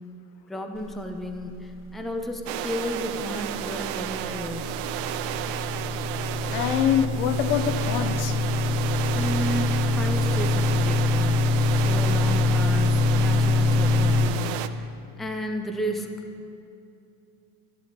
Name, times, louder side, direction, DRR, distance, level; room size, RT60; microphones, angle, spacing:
voice 1, 0.5-4.8 9.1-14.9 15.2-16.1, equal, ahead, 4 dB, 0.5 m, -33 dB
sound 1, 2.5-14.7, right 11 dB, 50° right, 0.5 m, -32 dB
sound 2, 3.4-14.3, left 3 dB, 30° left, 0.9 m, -24 dB
voice 2, 6.5-8.6, left 9 dB, 80° left, 8 dB, 0.9 m, -25 dB
11.5 x 10.5 x 2.9 m, 2.7 s
hypercardioid pair, 95°, 46 cm